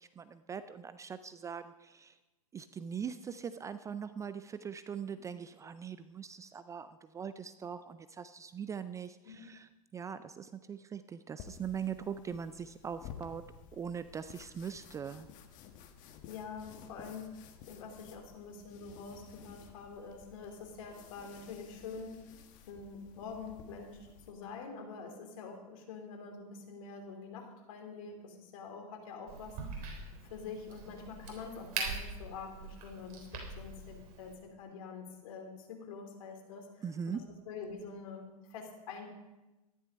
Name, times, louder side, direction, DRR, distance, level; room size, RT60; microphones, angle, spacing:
voice 1, 0.0-2.2 2.5-15.3 36.8-37.3, right 7 dB, 15° right, 13 dB, 0.4 m, -41 dB
sound 1, 11.4-24.3, left 8 dB, 40° left, 1.5 m, -54 dB
voice 2, 16.2-22.3 22.7-29.9 30.3-33.3 33.6-37.2 37.5-39.1, left 5 dB, 60° left, 3 dB, 3.1 m, -46 dB
Crack, 29.3-34.3, right 4 dB, 45° right, 3.6 m, -42 dB
13.5 x 11.0 x 5.2 m, 1.0 s
hypercardioid pair, 110°, 20 cm